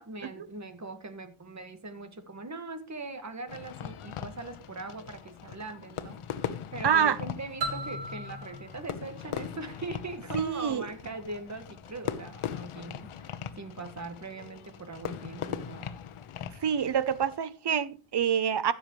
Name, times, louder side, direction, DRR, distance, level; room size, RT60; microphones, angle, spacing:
voice 1, 0.0-15.9, right 2 dB, 35° right, 1.7 m, -41 dB
Fireworks, 3.5-17.4, left 9 dB, 85° left, 1.0 m, -40 dB
voice 2, 6.8-7.2 10.3-10.9 16.6-18.7, right 8 dB, 55° right, 0.8 m, -26 dB
sound 1, 7.6-10.3, right 1 dB, 70° right, 4.4 m, -38 dB
15.0 x 7.1 x 3.2 m
wide cardioid pair, 100°, 49 cm